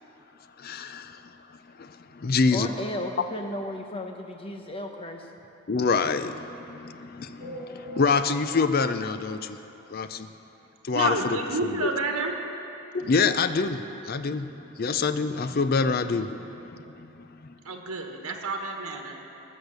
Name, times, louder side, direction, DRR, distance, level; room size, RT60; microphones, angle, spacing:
voice 1, 0.6-1.3 1.8-2.7 5.7-9.6 9.9-10.3 10.8-11.8 12.9-17.5, left 4 dB, 45° left, 11 dB, 0.5 m, -27 dB
voice 2, 2.5-5.3, left 1 dB, 25° left, 3 dB, 0.9 m, -34 dB
sound 1, 7.4-10.3 10.7-10.8 11.0-11.2 11.4-11.5 12.4-12.5 13.0-13.1, equal, 40° right, 3.5 m, -44 dB
voice 3, 10.9-12.3 17.6-19.1, right 3 dB, 85° right, 3 dB, 1.4 m, -30 dB
19.0 x 6.6 x 6.7 m, 2.9 s
head